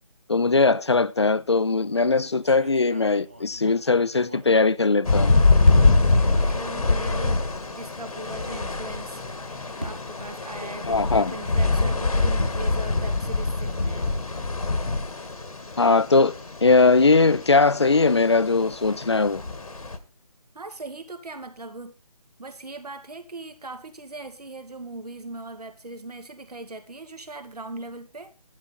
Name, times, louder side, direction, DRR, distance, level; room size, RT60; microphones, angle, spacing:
voice 1, 0.3-5.3 10.8-11.3 15.8-19.4, left 3 dB, 45° left, 0.5 m, -20 dB
sound 1, 1.6-1.9 2.4-5.2 5.6-6.2 6.9-7.0 7.4-7.5 9.1-11.4, right 1 dB, 15° right, 0.7 m, -41 dB
sound 2, 5.1-20.0, left 3 dB, 70° left, 1.8 m, -24 dB
voice 2, 5.8-7.4 7.8-14.2 20.5-22.0 22.4-28.3, right 2 dB, 85° right, 2.4 m, -39 dB
11.5 x 11.0 x 4.2 m
figure-of-eight pair, 180°, 19 cm